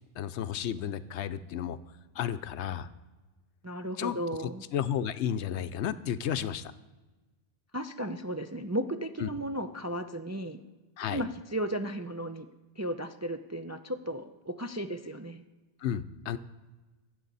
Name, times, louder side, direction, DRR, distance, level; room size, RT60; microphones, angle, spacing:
voice 1, 0.2-1.8 2.1-2.9 4.0-4.2 4.7-6.7 9.2-9.3 11.0-11.2 15.8-16.4, left 9 dB, 75° left, 13 dB, 0.9 m, -32 dB
voice 2, 3.6-4.6 7.7-10.6 11.1-12.5 12.8-15.4, right 1 dB, 25° right, 7 dB, 0.3 m, -35 dB
23.0 x 7.9 x 4.1 m, 1.2 s
omnidirectional pair, 1.2 m